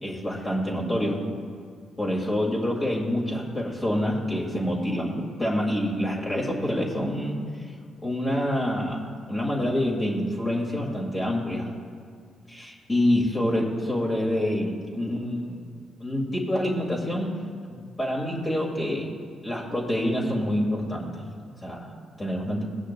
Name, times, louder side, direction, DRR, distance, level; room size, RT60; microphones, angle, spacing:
voice 1, 0.0-1.2 2.0-7.4 8.0-9.0 9.3-11.7 12.5-15.6 16.0-17.3 17.7-19.1 19.4-21.2 21.6-22.6, left 1 dB, 25° left, -3 dB, 2.2 m, -27 dB
18.0 x 10.0 x 2.3 m, 2.1 s
cardioid pair, 90°, 0 cm